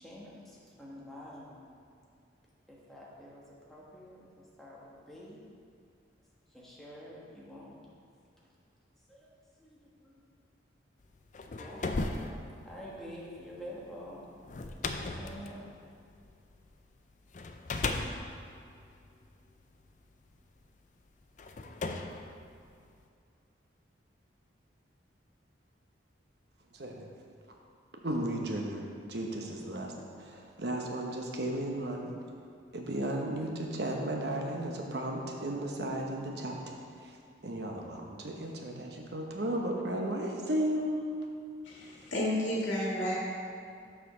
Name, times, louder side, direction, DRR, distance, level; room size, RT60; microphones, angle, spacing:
voice 1, 0.0-1.7 2.7-5.4 6.5-7.8 9.1-9.3 9.6-10.2 11.6-12.0 12.6-14.2 15.1-15.7, equal, ahead, -6 dB, 1.2 m, -48 dB
sound 1, 11.1-16.7 17.3-19.8 20.6-20.7 21.4-23.1, left 3 dB, 40° left, 0.4 m, -37 dB
voice 2, 26.7-27.1 27.9-29.9 30.2-32.1 32.7-36.6 37.0-37.1 37.4-41.1, right 1 dB, 60° right, 0 dB, 1.0 m, -34 dB
voice 3, 41.6-43.1, left 1 dB, 85° left, -4 dB, 2.0 m, -31 dB
6.8 x 5.0 x 6.1 m, 2.4 s
head